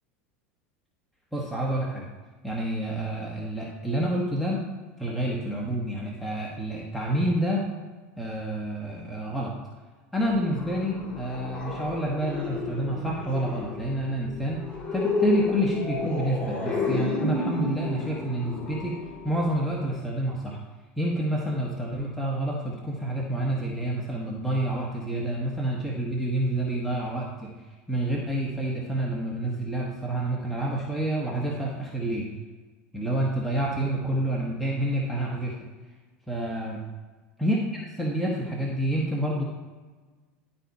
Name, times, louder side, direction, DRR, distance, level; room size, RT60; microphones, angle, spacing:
voice 1, 1.3-2.1 2.4-4.7 5.0-7.7 8.2-9.6 10.1-20.6 21.0-27.5 27.9-32.3 32.9-35.6 36.3-36.8 37.4-39.4, right 1 dB, ahead, -4 dB, 1.3 m, -28 dB
sound 1, 10.2-19.9, left 3 dB, 15° left, 2.4 m, -31 dB
11.5 x 4.1 x 4.2 m, 1.3 s
hypercardioid pair, 105°, 7 cm